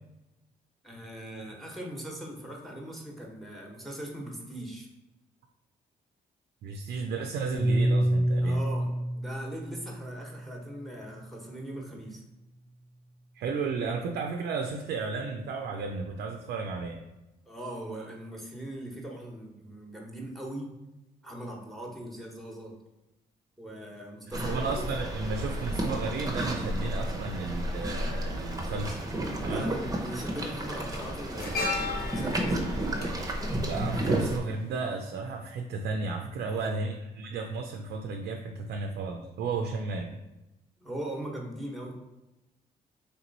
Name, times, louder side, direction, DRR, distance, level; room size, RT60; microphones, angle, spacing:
voice 1, 0.8-4.9 8.4-12.2 17.5-20.7 21.2-22.8 23.6-24.7 29.4-32.6 36.5-36.9 40.8-41.9, right 1 dB, ahead, -1 dB, 1.1 m, -40 dB
voice 2, 6.6-8.6 13.3-17.0 24.3-29.0 29.4-29.7 33.6-40.2, right 4 dB, 70° right, 4 dB, 0.4 m, -33 dB
Piano, 7.5-12.0, right 1 dB, 85° left, 1.3 m, -29 dB
sound 1, 24.3-34.4, right 1 dB, 20° right, 0.7 m, -32 dB
sound 2, 29.8-30.0 30.3-34.6 34.8-35.0, left 3 dB, 65° left, 1.0 m, -36 dB
3.3 x 2.9 x 4.0 m, 0.97 s
cardioid pair, 75°, 17 cm